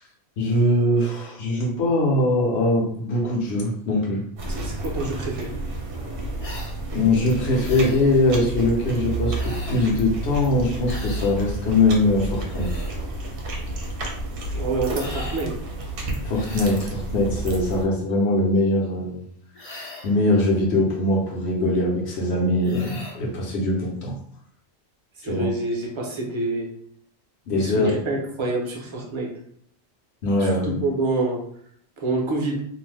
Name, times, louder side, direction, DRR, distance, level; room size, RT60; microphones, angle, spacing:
voice 1, 0.4-4.2 6.9-12.7 16.2-19.2 20.0-24.1 25.2-25.5 27.5-28.0 30.2-30.8, left 1 dB, 70° left, -1 dB, 1.0 m, -22 dB
sound 1, 4.4-17.9, right 2 dB, 60° right, 0.8 m, -30 dB
voice 2, 4.5-5.5 14.5-15.5 25.2-26.7 27.6-29.3 30.4-31.4 32.0-32.6, right 2 dB, 35° right, -1 dB, 0.6 m, -27 dB
sound 2, 6.4-6.8 7.6-8.0 9.3-9.9 10.9-11.3 12.3-12.9 14.9-15.5 16.3-16.9 19.5-20.2 22.6-23.2, left 1 dB, 40° left, 0.5 m, -39 dB
2.6 x 2.1 x 3.2 m, 0.65 s
omnidirectional pair, 1.2 m